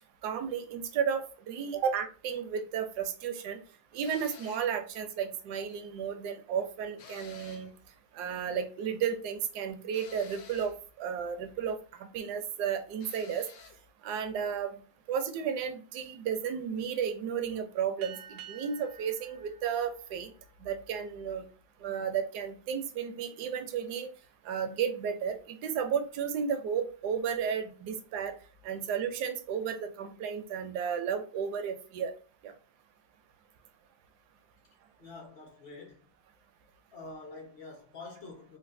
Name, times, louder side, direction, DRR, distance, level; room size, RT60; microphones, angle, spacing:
voice 1, 0.2-3.6 3.9-7.7 8.1-13.5 14.0-14.8 15.1-20.3 20.6-21.4 21.8-24.1 24.4-28.3 28.6-32.1 32.4-32.5, right 7 dB, 70° right, 1.0 m, -33 dB
sound 1, 4.0-4.7 7.0-7.8 9.9-10.8 13.0-13.8, left 6 dB, 80° left, 1.3 m, -51 dB
sound 2, 18.0-21.0, right 9 dB, 90° right, 0.7 m, -50 dB
voice 2, 35.0-36.1 36.9-38.6, left 3 dB, 45° left, 0.8 m, -46 dB
3.9 x 2.3 x 2.5 m
omnidirectional pair, 2.0 m